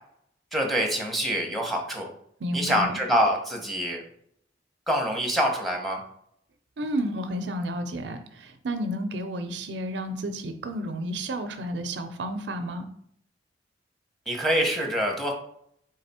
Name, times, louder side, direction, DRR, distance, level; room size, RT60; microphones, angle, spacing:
voice 1, 0.5-2.1 2.5-4.0 4.9-6.0 14.3-15.3, equal, ahead, 0 dB, 0.8 m, -25 dB
voice 2, 2.4-3.0 6.8-12.9, equal, 75° right, 8 dB, 0.5 m, -31 dB
3.8 x 3.3 x 4.2 m, 0.69 s
head